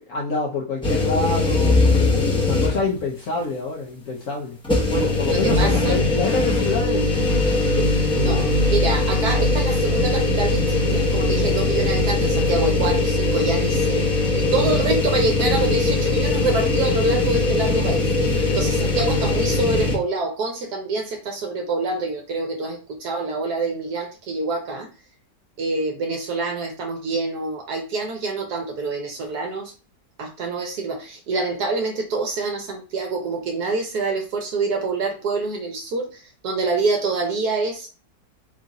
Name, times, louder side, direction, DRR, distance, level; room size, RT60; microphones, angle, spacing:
voice 1, 0.1-4.6 4.9-8.5 14.5-14.7 18.3-18.6, left 3 dB, 60° left, -3 dB, 1.1 m, -28 dB
sound 1, 0.8-3.0 3.4-3.5 4.6-20.0, left 2 dB, 5° left, 0.7 m, -20 dB
voice 2, 5.2-6.0 8.2-24.9 25.6-29.7 30.2-37.9, right 3 dB, 80° right, 3 dB, 1.3 m, -26 dB
3.7 x 2.5 x 4.0 m, 0.34 s
omnidirectional pair, 1.7 m